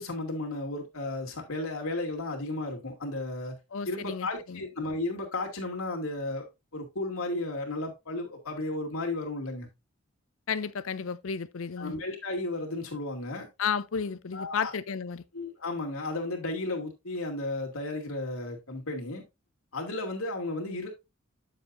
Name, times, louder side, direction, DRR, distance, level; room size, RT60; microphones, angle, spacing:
voice 1, 0.0-3.5 3.8-6.5 6.7-9.7 11.8-13.5 14.3-14.7 15.3-19.2 19.7-20.9, left 2 dB, 85° left, 2.6 m, -34 dB
voice 2, 3.7-4.6 10.5-12.0 13.6-15.2, left 6 dB, 70° left, 0.5 m, -32 dB
8.9 x 7.3 x 2.6 m
head